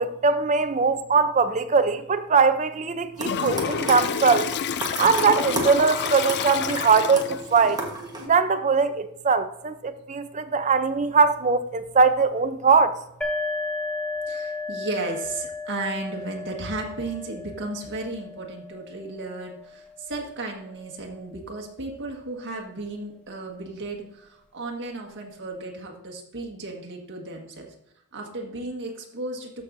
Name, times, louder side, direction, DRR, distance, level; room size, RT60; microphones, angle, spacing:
voice 1, 0.0-4.5 5.0-7.8 8.3-12.9, right 5 dB, 35° right, 0.6 m, -21 dB
Toilet flush, 3.2-7.6, left 7 dB, 50° left, 0.4 m, -29 dB
sound 1, 3.2-8.3, right 2 dB, 20° right, 1.3 m, -33 dB
sound 2, 13.2-20.7, left 3 dB, 5° left, 1.0 m, -34 dB
voice 2, 14.3-27.7 28.1-29.6, right 2 dB, 55° right, 1.7 m, -34 dB
13.0 x 6.3 x 2.7 m
head